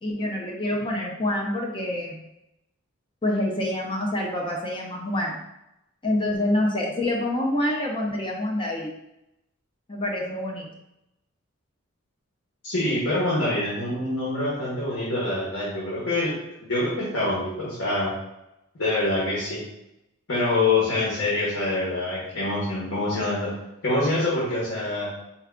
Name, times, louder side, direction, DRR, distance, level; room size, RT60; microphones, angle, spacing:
voice 1, 0.0-2.2 3.2-5.4 6.0-8.9 9.9-10.7 13.3-13.4, left 1 dB, 25° left, -2 dB, 0.5 m, -26 dB
voice 2, 12.6-16.4 16.7-18.1 18.7-19.6 20.3-23.5 23.8-25.1, left 2 dB, 55° left, -6 dB, 1.1 m, -25 dB
4.6 x 2.2 x 3.6 m, 0.87 s
head